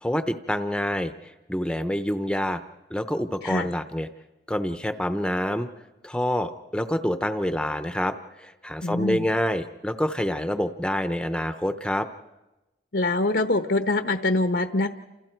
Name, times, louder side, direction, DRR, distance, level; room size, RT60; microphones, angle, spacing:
voice 1, 0.0-2.6 2.9-4.1 4.5-5.7 6.0-12.1, equal, 5° left, 9 dB, 0.7 m, -27 dB
voice 2, 8.8-9.2 12.9-14.9, left 2 dB, 75° left, 8 dB, 1.1 m, -24 dB
29.0 x 27.5 x 4.5 m, 1.0 s
head